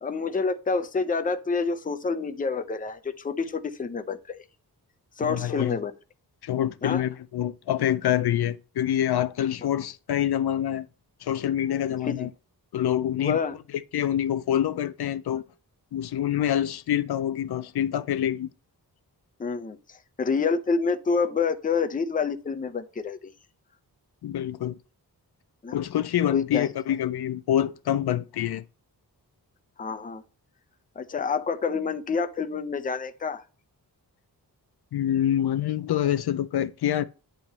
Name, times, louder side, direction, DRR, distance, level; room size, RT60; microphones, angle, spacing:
voice 1, 0.0-4.4 5.2-5.9 6.8-7.0 12.0-12.3 13.2-13.6 19.4-23.3 25.6-25.8 26.3-26.7 29.8-30.2 31.0-33.4, left 5 dB, 20° left, 0.5 m, -28 dB
voice 2, 5.2-5.8 6.4-10.9 11.2-12.3 12.7-13.4 13.9-15.4 15.9-18.5 24.2-24.8 25.7-28.6 34.9-37.0, left 11 dB, 75° left, 0.5 m, -26 dB
9.0 x 3.0 x 5.4 m
wide cardioid pair, 175°, 39 cm